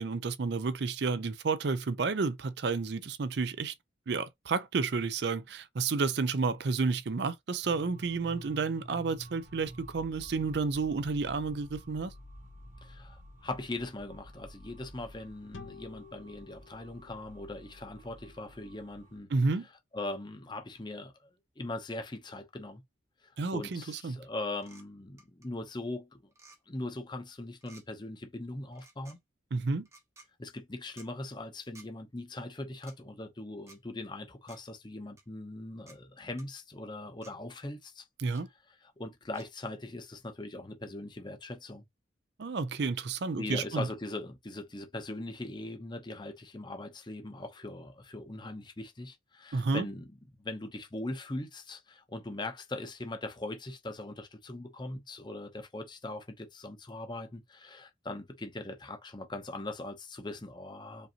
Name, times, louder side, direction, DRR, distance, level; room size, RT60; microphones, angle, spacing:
voice 1, 0.0-3.7 4.1-12.1 19.3-19.7 23.4-24.2 29.5-29.9 38.2-38.5 42.4-43.9 49.5-49.9, right 4 dB, 55° right, 0.4 m, -31 dB
sound 1, 7.6-19.2, equal, 40° right, 1.1 m, -51 dB
voice 2, 12.8-19.3 19.9-21.3 21.6-22.8 23.5-26.2 26.7-29.2 30.4-38.0 38.8-41.8 43.4-50.1 50.4-61.1, left 2 dB, 20° left, 0.7 m, -40 dB
sound 2, 15.5-18.9, left 5 dB, 75° left, 0.7 m, -54 dB
sound 3, 24.6-24.8 25.2-25.5 26.3-26.6 27.6-27.8 28.7-29.2 29.8-30.3 31.0-31.1 31.7-31.9 32.8-33.0 33.7-33.8 34.5-34.6 35.2-35.3 35.9-36.0 36.4-36.5 37.2-37.3 38.3-38.4 39.3-39.5, right 2 dB, 15° right, 0.8 m, -55 dB
5.2 x 2.6 x 2.8 m
head